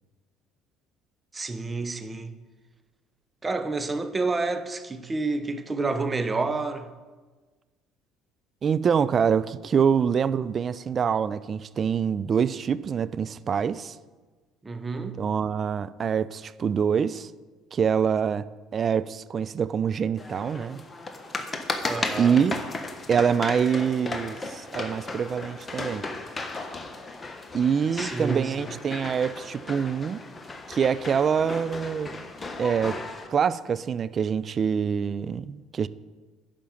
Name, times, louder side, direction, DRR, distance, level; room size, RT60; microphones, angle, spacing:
voice 1, 1.3-2.3 3.4-6.9 14.6-15.2 21.9-22.4 27.9-28.5, right 3 dB, 25° right, 0.9 m, -29 dB
voice 2, 8.6-14.0 15.2-17.3 17.7-18.5 18.7-20.8 22.2-22.6 23.1-26.0 27.5-30.2 30.7-32.3 32.6-33.0 33.3-35.9, right 7 dB, 45° right, 0.4 m, -25 dB
sound 1, 20.2-33.3, left 3 dB, 25° left, 1.2 m, -35 dB
10.5 x 5.2 x 7.1 m
hypercardioid pair, 65°, 0 cm